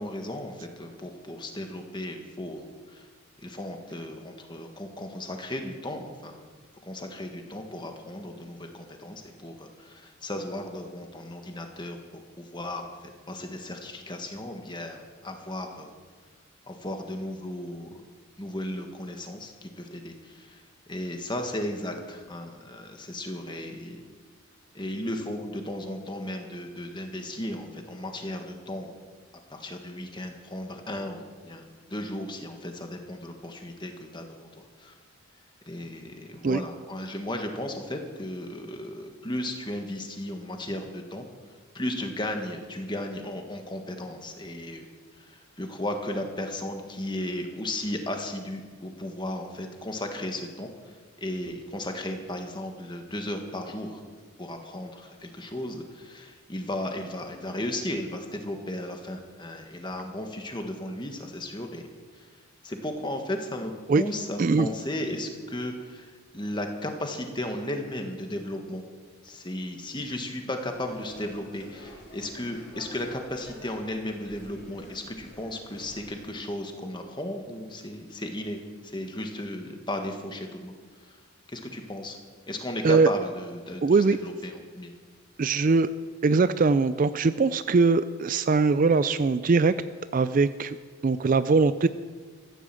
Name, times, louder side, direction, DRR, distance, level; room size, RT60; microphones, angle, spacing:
voice 1, 0.0-3.1 3.4-6.4 6.8-12.0 12.4-15.9 16.7-18.0 18.4-20.6 20.9-24.0 24.7-28.9 29.5-34.9 35.6-41.2 41.7-44.9 45.2-54.0 54.4-61.8 62.1-62.3 62.6-68.8 69.2-80.7 81.1-81.2 81.5-82.2 82.5-84.9, left 1 dB, 20° left, 4 dB, 1.6 m, -35 dB
voice 2, 64.4-64.7 82.8-83.1 83.8-84.2 85.4-85.9 86.2-89.7 90.1-90.8 91.0-91.9, right 4 dB, 40° right, 13 dB, 0.3 m, -21 dB
sound 1, 70.7-76.3, left 1 dB, 50° left, 4.1 m, -49 dB
14.5 x 11.0 x 7.6 m, 1.5 s
head